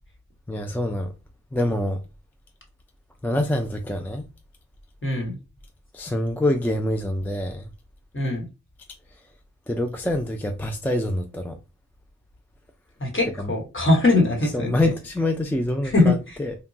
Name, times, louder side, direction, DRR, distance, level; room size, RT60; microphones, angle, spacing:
voice 1, 0.5-1.1 1.5-2.0 3.2-4.3 5.9-7.7 9.1-9.2 9.7-11.6 13.4-13.5 14.5-16.6, left 1 dB, 5° left, 0.3 m, -26 dB
voice 2, 5.0-5.4 8.1-8.5 13.0-14.7 15.8-16.4, left 2 dB, 40° left, 1.1 m, -21 dB
2.9 x 2.2 x 2.5 m
wide cardioid pair, 55°, 32 cm